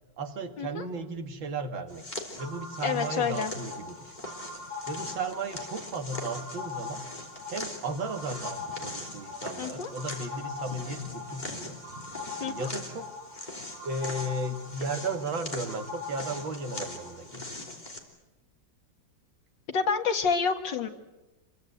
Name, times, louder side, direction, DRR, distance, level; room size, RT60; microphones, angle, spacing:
voice 1, 0.2-2.1 2.4-4.2 4.9-7.0 7.5-11.8 12.4-13.1 13.8-17.6, right 2 dB, 85° right, 6 dB, 2.6 m, -35 dB
sound 1, 1.9-18.0, left 2 dB, 20° left, 3.3 m, -42 dB
sound 2, 2.4-17.2, left 3 dB, 65° right, 7.1 m, -42 dB
voice 2, 2.8-3.5 9.6-9.9 12.4-12.7 19.7-20.9, left 5 dB, 70° left, 4 dB, 2.5 m, -28 dB
sound 3, 9.3-12.0 13.3-14.3, right 4 dB, 45° right, 3.7 m, -53 dB
27.0 x 23.0 x 8.0 m, 1.0 s
omnidirectional pair, 2.1 m